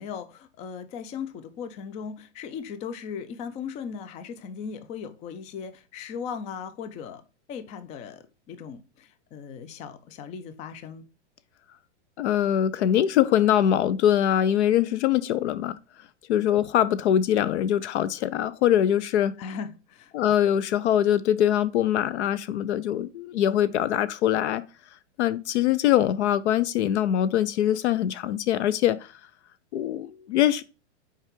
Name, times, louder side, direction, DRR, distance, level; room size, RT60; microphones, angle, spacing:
voice 1, 0.0-7.2 7.5-11.0 19.4-20.1, left 6 dB, 20° left, 0.4 m, -38 dB
voice 2, 12.2-15.8 16.3-19.4 20.1-24.6 25.2-29.1 29.7-30.6, left 11 dB, 70° left, 0.7 m, -23 dB
5.5 x 4.8 x 3.6 m
hypercardioid pair, 135°, 35 cm